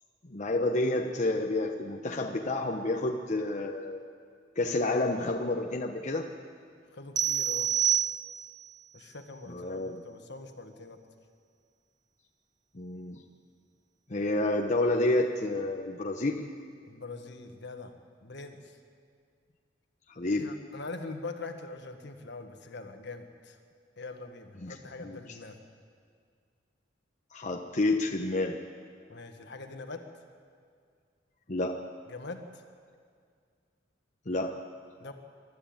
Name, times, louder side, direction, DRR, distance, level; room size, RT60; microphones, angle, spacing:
voice 1, 0.2-4.1 4.6-6.3 9.5-10.0 12.7-13.2 14.1-16.5 20.1-20.5 24.6-25.4 27.3-28.6 31.5-31.8 34.3-34.5, left 2 dB, 40° left, 2 dB, 1.0 m, -29 dB
voice 2, 6.9-7.7 8.9-11.0 16.9-18.0 18.2-18.8 20.4-23.6 24.0-25.6 29.1-30.0 32.1-32.6 35.0-35.1, left 3 dB, 65° left, 6 dB, 1.7 m, -43 dB
sound 1, 7.2-8.7, right 9 dB, 20° right, 0.6 m, -27 dB
23.5 x 12.5 x 8.9 m, 2.1 s
head